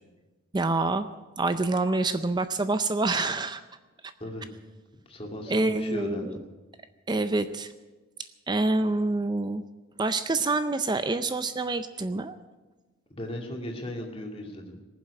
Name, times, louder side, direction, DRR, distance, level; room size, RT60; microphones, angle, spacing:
voice 1, 0.5-1.1 1.4-3.6 5.5-6.3 7.1-7.7 8.5-9.6 10.0-12.4, right 2 dB, 20° right, 11 dB, 0.4 m, -26 dB
voice 2, 5.1-6.4 13.1-14.8, left 1 dB, 25° left, 1 dB, 2.3 m, -36 dB
19.5 x 7.6 x 9.6 m, 1.2 s
head